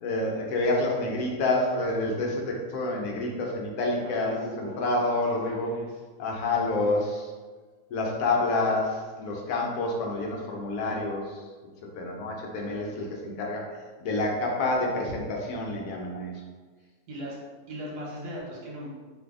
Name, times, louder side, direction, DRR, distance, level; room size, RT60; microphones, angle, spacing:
voice 1, 0.0-5.7 6.2-7.3 7.9-11.4 11.9-13.7 14.0-16.3, left 2 dB, 75° left, -1 dB, 1.1 m, -28 dB
voice 2, 3.9-6.0 17.1-17.4 17.7-18.9, equal, 85° right, -3 dB, 1.4 m, -39 dB
2.6 x 2.6 x 3.5 m, 1.4 s
omnidirectional pair, 1.7 m